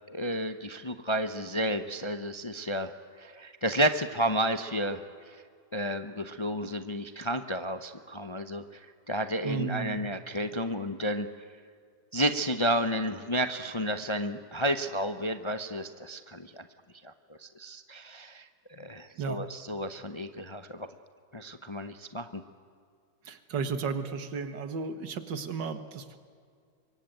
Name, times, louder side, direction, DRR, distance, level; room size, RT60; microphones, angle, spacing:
voice 1, 0.1-5.4 5.7-11.3 12.1-16.7 17.0-17.1 17.4-20.9 21.3-22.4, equal, 30° left, 9 dB, 0.5 m, -32 dB
voice 2, 9.4-10.0 19.2-19.4 23.3-26.2, right 5 dB, 90° right, 10 dB, 2.2 m, -34 dB
25.5 x 23.5 x 9.2 m, 2.2 s
omnidirectional pair, 1.9 m